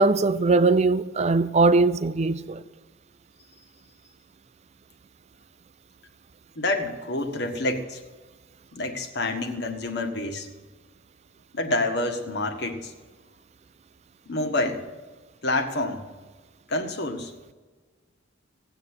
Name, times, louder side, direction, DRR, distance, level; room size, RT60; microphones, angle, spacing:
voice 1, 0.0-2.6, right 3 dB, 35° right, 0.5 m, -20 dB
voice 2, 6.5-8.0 8.7-10.5 11.5-12.9 14.3-14.9 15.4-16.0 16.7-17.3, left 2 dB, 55° left, 1.6 m, -28 dB
17.5 x 8.2 x 8.3 m
head